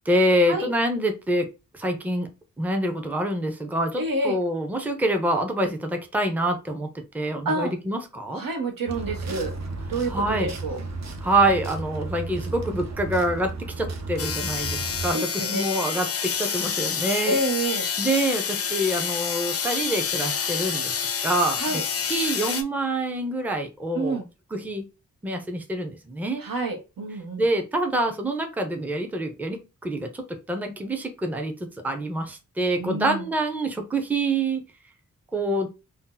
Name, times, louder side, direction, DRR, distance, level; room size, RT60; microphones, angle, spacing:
voice 1, 0.1-1.5 1.7-2.3 2.6-6.9 7.1-8.4 10.1-10.5 11.2-17.4 18.0-20.9 21.2-21.8 22.1-24.2 24.5-24.8 25.2-26.4 27.4-30.2 30.5-34.6 35.3-35.7, right 1 dB, 5° right, 5 dB, 0.5 m, -26 dB
voice 2, 4.0-4.4 7.4-7.7 8.3-9.5 9.9-10.8 15.1-15.6 17.3-17.9 21.6-21.8 23.9-24.3 26.4-27.4 32.8-33.3, right 2 dB, 85° right, 4 dB, 0.9 m, -28 dB
sound 1, 8.9-15.1, right 3 dB, 55° right, 0.6 m, -34 dB
sound 2, 14.2-22.6, left 7 dB, 45° left, 0.4 m, -28 dB
2.7 x 2.0 x 3.7 m, 0.28 s
wide cardioid pair, 130°, 33 cm